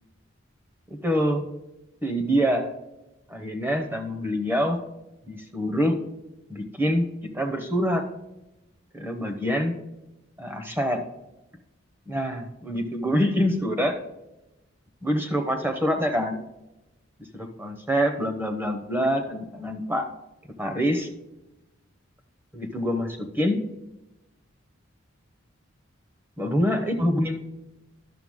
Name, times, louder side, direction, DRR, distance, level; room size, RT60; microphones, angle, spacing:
voice 1, 0.9-1.5 2.0-2.7 3.3-4.8 5.3-6.0 6.5-8.0 8.9-9.8 10.4-11.0 12.1-14.0 15.0-16.4 17.3-20.1 20.6-21.1 22.5-23.6 26.4-27.4, equal, 10° right, 5 dB, 0.9 m, -25 dB
11.0 x 6.8 x 3.7 m, 0.97 s
head